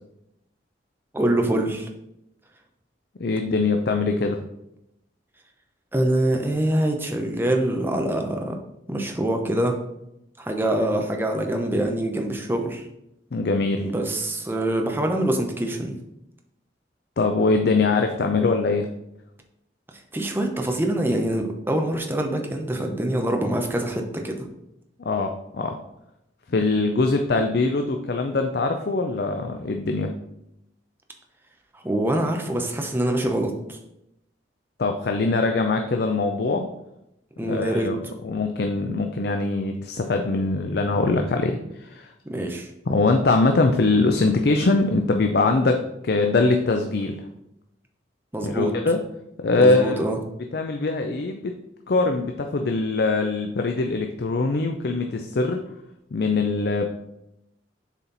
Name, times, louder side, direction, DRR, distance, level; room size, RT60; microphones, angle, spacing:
voice 1, 1.1-1.9 5.9-8.6 8.9-9.8 10.4-12.8 13.8-16.0 20.1-24.4 31.7-33.8 37.4-37.9 42.3-42.7 48.3-48.7 49.6-50.2, right 1 dB, 10° right, 3 dB, 0.8 m, -24 dB
voice 2, 3.2-4.4 13.3-13.9 17.2-18.9 25.0-25.7 26.5-30.1 34.8-36.7 37.4-38.0 38.2-42.1 42.9-47.2 48.4-49.0 49.4-50.0 50.5-51.5 51.9-55.6 56.1-56.8, left 3 dB, 60° left, 4 dB, 0.5 m, -22 dB
7.1 x 4.3 x 4.0 m, 0.83 s
head